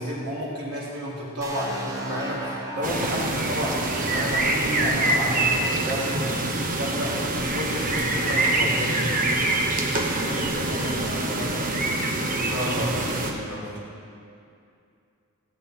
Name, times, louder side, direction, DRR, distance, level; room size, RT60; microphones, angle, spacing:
voice 1, 0.0-7.2 7.5-9.3 12.5-13.8, equal, 90° right, -6 dB, 3.4 m, -31 dB
sound 1, 1.4-5.2, right 1 dB, 15° right, 1.2 m, -37 dB
sound 2, 2.8-13.3, right 2 dB, 40° right, 1.0 m, -25 dB
voice 2, 10.1-12.0, equal, 40° left, -5 dB, 2.5 m, -35 dB
17.5 x 7.9 x 4.5 m, 2.5 s
head